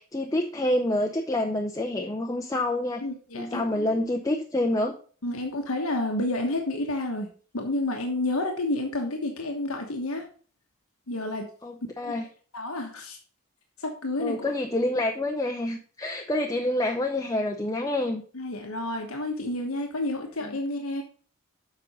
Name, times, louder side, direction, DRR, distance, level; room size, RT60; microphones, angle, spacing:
voice 1, 0.0-3.0 3.3-4.9 11.6-12.2 14.2-18.2 20.4-20.6, left 1 dB, 15° left, 2 dB, 0.6 m, -27 dB
voice 2, 3.0-4.0 5.2-7.3 7.5-10.3 11.1-11.5 12.0-12.2 12.5-13.2 13.8-14.5 18.3-21.0, left 2 dB, 90° left, 2 dB, 1.3 m, -30 dB
7.6 x 5.3 x 5.4 m, 0.42 s
head